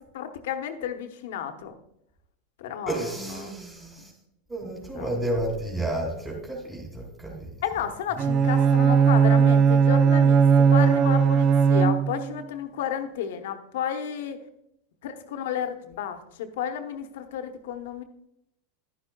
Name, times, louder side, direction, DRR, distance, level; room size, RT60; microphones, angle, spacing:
voice 1, 0.1-1.7 2.6-3.6 4.0-4.1 4.9-5.2 7.6-14.4 15.0-18.0, left 9 dB, 70° left, 8 dB, 1.0 m, -32 dB
voice 2, 2.9-4.1 4.5-7.5, right 1 dB, 15° right, -3 dB, 2.5 m, -31 dB
Bowed string instrument, 8.2-12.4, right 6 dB, 40° right, 0.4 m, -18 dB
11.0 x 9.9 x 2.3 m, 0.80 s
hypercardioid pair, 100°, 0 cm